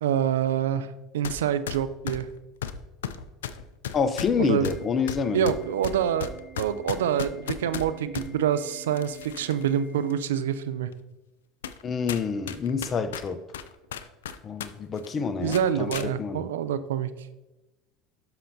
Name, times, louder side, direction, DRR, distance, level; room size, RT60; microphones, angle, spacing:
voice 1, 0.0-2.3 4.4-4.7 5.3-6.3 6.6-10.9 15.4-17.1, right 9 dB, 85° right, 13 dB, 0.4 m, -26 dB
sound 1, 1.2-1.4 1.7-8.3 8.9-9.7 10.1-10.2 10.9-11.0 11.6-11.8 12.1-14.7 15.0-15.1 15.5-16.1, left 8 dB, 90° left, 0.4 m, -35 dB
voice 2, 3.9-5.5 11.8-13.4 14.4-16.5, left 6 dB, 35° left, 11 dB, 0.7 m, -28 dB
Organ, 4.7-10.7, right 7 dB, 15° right, 1.0 m, -49 dB
11.5 x 5.6 x 2.7 m, 1.1 s
hypercardioid pair, 80°, 0 cm